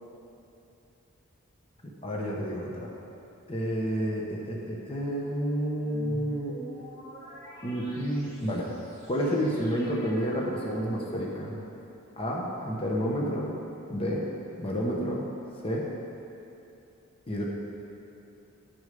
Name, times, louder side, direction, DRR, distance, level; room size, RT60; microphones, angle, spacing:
voice 1, 2.0-2.9 3.5-6.6 7.6-8.7 9.1-11.5 12.2-13.5 13.9-14.3 14.6-15.2 15.6-15.9 17.3-17.4, equal, 25° left, -3 dB, 0.9 m, -30 dB
sound 1, 5.7-12.0, right 1 dB, 45° left, 2.4 m, -45 dB
9.9 x 6.5 x 5.2 m, 2.8 s
head